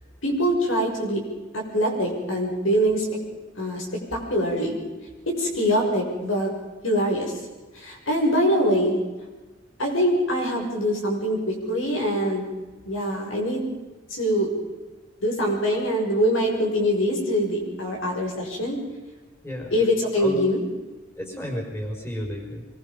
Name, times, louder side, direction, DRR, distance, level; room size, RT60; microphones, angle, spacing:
voice 1, 0.2-1.2 1.5-3.1 3.6-4.7 5.3-6.5 6.8-7.3 7.7-9.0 9.8-12.4 12.9-13.7 14.1-14.5 15.2-18.8 19.7-20.6, equal, 85° left, 0 dB, 6.9 m, -23 dB
voice 2, 19.4-19.7 20.2-20.4 21.2-22.6, equal, 10° left, 1 dB, 5.3 m, -32 dB
25.5 x 23.0 x 5.4 m, 1.2 s
head